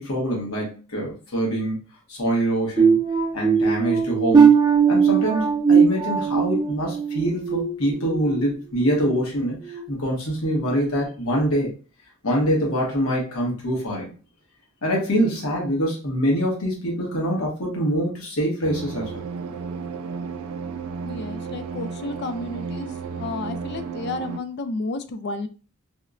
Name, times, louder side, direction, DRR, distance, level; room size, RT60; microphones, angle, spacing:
voice 1, 0.0-1.8 2.1-3.0 3.3-4.5 4.9-11.7 12.2-14.1 14.8-19.2, equal, 80° left, -2 dB, 1.1 m, -24 dB
sound 1, 2.8-8.4 8.9-9.1 9.7-9.8, right 6 dB, 20° right, 0.5 m, -19 dB
sound 2, 18.6-24.4, right 5 dB, 80° right, 0.3 m, -33 dB
voice 2, 21.0-22.9 23.2-25.5, left 2 dB, 50° left, 10 dB, 0.4 m, -31 dB
4.1 x 2.0 x 2.4 m, 0.35 s
head